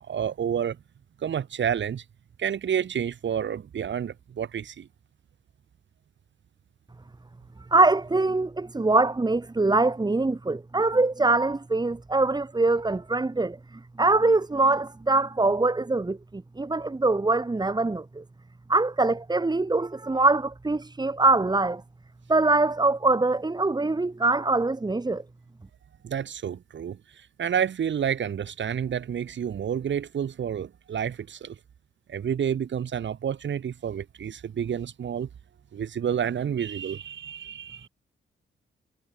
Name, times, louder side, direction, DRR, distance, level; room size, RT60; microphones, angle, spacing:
voice 1, 0.1-0.8 1.2-2.0 2.4-4.9 26.0-31.6 32.1-35.3 35.7-37.9, right 8 dB, 65° right, 5.3 m, -29 dB
voice 2, 7.7-18.2 18.7-21.8 22.3-25.2, right 3 dB, 20° right, 6.1 m, -23 dB
cardioid pair, 115°, 20 cm